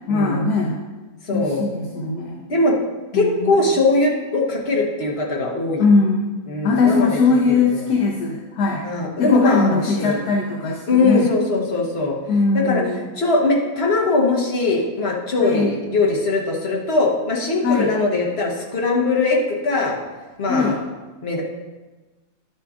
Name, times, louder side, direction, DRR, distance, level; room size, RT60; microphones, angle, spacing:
voice 1, 0.1-0.8 1.3-2.4 3.1-3.6 5.8-6.3 6.6-8.8 9.2-11.3 12.3-13.1 15.4-15.7 17.6-17.9 20.5-20.7, left 4 dB, 65° left, -1 dB, 1.3 m, -20 dB
voice 2, 1.3-1.6 2.5-2.8 3.1-5.8 6.5-7.2 7.5-7.9 8.8-10.2 10.9-12.2 12.5-12.8 13.2-20.0 20.4-20.8 21.2-21.4, left 3 dB, 40° left, -2 dB, 1.3 m, -20 dB
11.0 x 7.0 x 2.5 m, 1.2 s
omnidirectional pair, 1.9 m